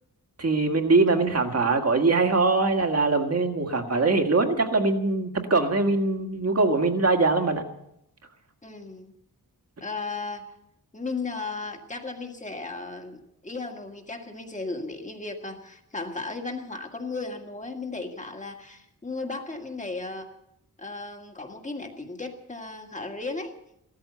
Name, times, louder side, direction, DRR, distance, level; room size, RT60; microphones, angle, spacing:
voice 1, 0.4-7.6, right 3 dB, 40° right, 5 dB, 1.8 m, -22 dB
voice 2, 8.6-9.1 9.8-10.5 10.9-20.3 20.8-23.5, left 3 dB, 20° left, 4 dB, 1.8 m, -35 dB
15.5 x 13.5 x 6.8 m, 0.77 s
wide cardioid pair, 140°, 37 cm